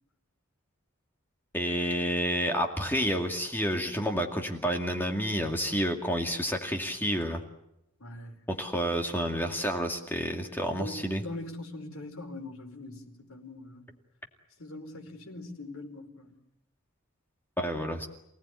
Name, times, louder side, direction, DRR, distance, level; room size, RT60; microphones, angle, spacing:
voice 1, 1.5-7.4 8.5-11.2 17.6-18.1, equal, 10° left, 2 dB, 2.3 m, -29 dB
voice 2, 8.0-8.4 10.7-13.9 14.6-16.4, left 2 dB, 75° left, 4 dB, 4.9 m, -42 dB
29.0 x 18.5 x 9.6 m, 0.83 s
head